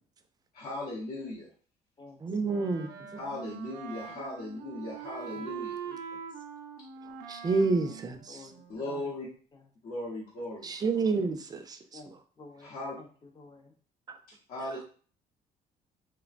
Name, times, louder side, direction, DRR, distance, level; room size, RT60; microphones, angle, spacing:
voice 1, 0.5-1.5 3.2-5.7 7.0-7.1 8.7-9.3 9.8-10.7 12.6-13.0 14.5-14.8, left 1 dB, 65° left, 0.8 m, -38 dB
voice 2, 2.2-2.9 7.3-8.5 10.6-12.0, right 4 dB, 25° right, 0.3 m, -29 dB
Wind instrument woodwind instrument, 2.4-9.0, right 7 dB, 90° right, 0.4 m, -43 dB
voice 3, 5.8-6.2 7.8-7.9 8.3-9.2 11.9-13.1 13.4-13.7, left 3 dB, 25° left, 0.5 m, -51 dB
3.2 x 2.1 x 2.4 m
cardioid pair, 110°, 17 cm